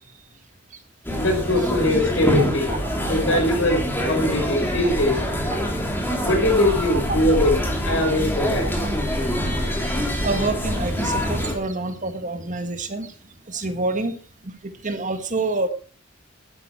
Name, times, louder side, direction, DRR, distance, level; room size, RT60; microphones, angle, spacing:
sound 1, 1.0-11.5, equal, 10° left, 2.9 m, -25 dB
voice 1, 1.2-2.7 3.1-5.2 6.2-8.7, left 1 dB, 75° left, 3 dB, 5.1 m, -21 dB
voice 2, 10.2-13.1 13.5-14.2 14.8-15.7, right 3 dB, 40° right, 8 dB, 1.6 m, -27 dB
12.0 x 11.0 x 4.6 m, 0.38 s
head